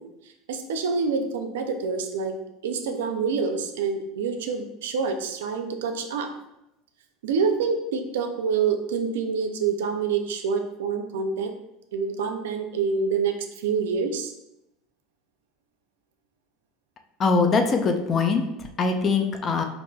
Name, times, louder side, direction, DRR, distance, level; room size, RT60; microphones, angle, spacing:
voice 1, 0.5-2.4 2.6-6.3 7.2-11.5 11.9-13.3 13.6-14.3, right 5 dB, 85° right, 6 dB, 0.4 m, -26 dB
voice 2, 17.2-19.6, left 4 dB, 35° left, 5 dB, 0.5 m, -22 dB
4.7 x 2.5 x 2.3 m, 0.87 s
supercardioid pair, 110°, 0 cm